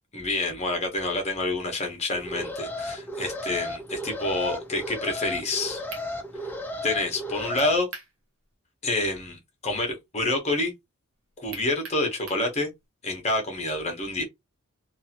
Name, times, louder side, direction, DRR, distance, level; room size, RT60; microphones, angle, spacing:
voice 1, 0.1-5.8 6.8-7.9 8.8-10.7 11.4-12.7 13.0-14.2, left 2 dB, 30° left, 0.9 m, -28 dB
Alarm, 2.1-7.8, left 1 dB, 10° left, 0.4 m, -34 dB
sound 1, 5.9-6.1 7.6-8.1 8.5-8.6 11.5-12.5, right 4 dB, 60° right, 0.8 m, -41 dB
2.7 x 2.4 x 2.8 m
head